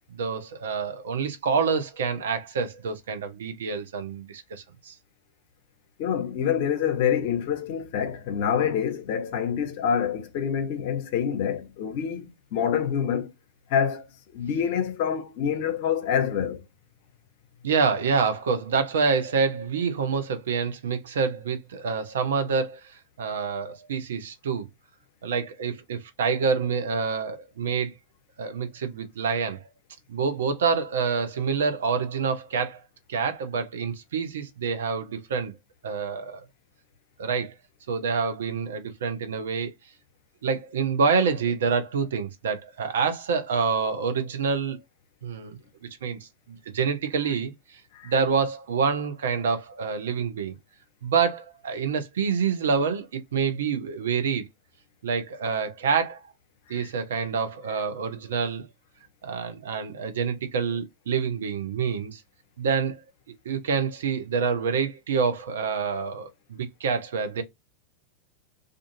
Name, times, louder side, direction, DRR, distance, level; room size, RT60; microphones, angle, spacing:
voice 1, 0.1-4.9 17.6-24.7 25.2-27.9 28.4-29.6 30.1-32.8 33.1-35.5 35.8-36.4 37.2-37.5 37.9-39.7 40.4-44.8 45.2-45.6 46.0-46.2 46.5-47.5 48.0-50.6 51.0-54.5 55.0-56.2 56.7-58.7 59.2-62.2 62.6-63.0 63.4-67.4, right 5 dB, 60° right, 0.6 m, -27 dB
voice 2, 6.0-13.3 13.7-14.1 14.3-16.6 47.9-48.1 56.7-56.9, left 8 dB, 50° left, 0.6 m, -26 dB
2.5 x 2.4 x 2.6 m
figure-of-eight pair, 90°, 0 cm